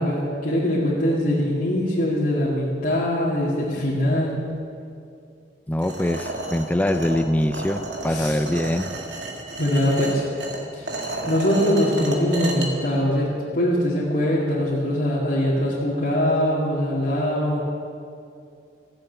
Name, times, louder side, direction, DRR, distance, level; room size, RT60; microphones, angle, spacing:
voice 1, 0.0-4.4 8.1-8.4 9.6-10.2 10.7-10.9 11.3-13.3 13.5-17.6, equal, 50° left, -9 dB, 2.2 m, -22 dB
voice 2, 5.7-8.9, left 1 dB, 10° left, 10 dB, 0.3 m, -23 dB
sound 1, 5.8-12.7, right 2 dB, 90° right, 1.8 m, -32 dB
14.5 x 7.9 x 8.0 m, 2.5 s
head